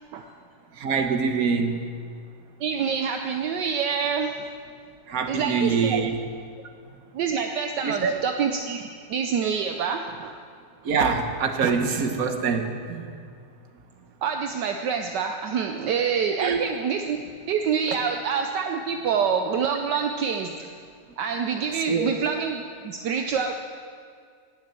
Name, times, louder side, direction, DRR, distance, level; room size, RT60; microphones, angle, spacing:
voice 1, 0.7-1.9 5.1-6.2 7.8-8.1 10.8-13.1 16.4-16.6 21.9-22.1, right 5 dB, 55° right, 5 dB, 1.5 m, -24 dB
voice 2, 2.6-4.4 5.3-6.1 7.1-10.4 14.2-17.2 17.5-20.6 21.2-23.5, right 6 dB, 70° right, 4 dB, 1.3 m, -26 dB
19.5 x 7.4 x 7.6 m, 2.2 s
omnidirectional pair, 2.0 m